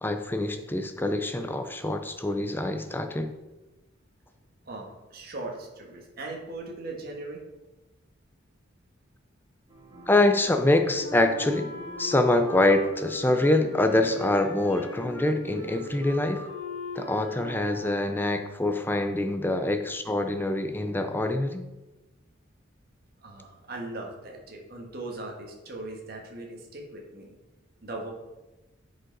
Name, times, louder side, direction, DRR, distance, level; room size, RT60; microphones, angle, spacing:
voice 1, 0.0-3.3 10.1-11.7 12.0-16.5 17.0-21.6, left 2 dB, 10° left, 7 dB, 0.5 m, -25 dB
voice 2, 4.6-7.4 23.2-27.4 27.8-28.1, right 2 dB, 45° right, 0 dB, 1.6 m, -39 dB
sound 1, 9.7-16.3, left 1 dB, 30° right, 2.0 m, -46 dB
Wind instrument woodwind instrument, 11.0-18.6, left 3 dB, 60° left, 1.8 m, -40 dB
9.5 x 5.5 x 4.0 m, 1.1 s
head